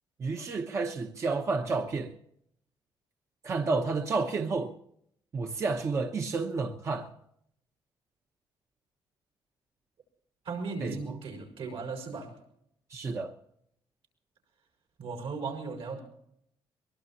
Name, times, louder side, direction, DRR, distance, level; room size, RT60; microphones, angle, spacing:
voice 1, 0.2-2.1 3.4-4.7 5.3-7.1 10.8-11.0 12.9-13.3, right 4 dB, 30° right, 0.9 m, -30 dB
voice 2, 10.4-12.3 15.0-16.0, right 4 dB, 70° right, 5.5 m, -37 dB
23.0 x 21.5 x 2.9 m
cardioid pair, 155°, 9 cm